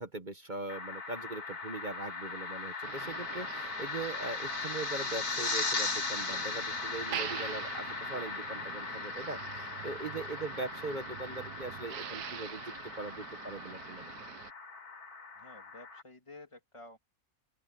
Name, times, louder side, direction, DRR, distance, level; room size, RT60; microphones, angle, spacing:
voice 1, 0.0-14.1, right 3 dB, 35° right, 1.2 m, -41 dB
sound 1, 0.7-16.0, left 4 dB, 75° left, 3.8 m, -38 dB
Motor vehicle (road), 2.8-14.5, right 11 dB, 90° right, 1.4 m, -45 dB
voice 2, 15.4-17.0, left 2 dB, 20° left, 2.9 m, -52 dB
open air
omnidirectional pair, 1.6 m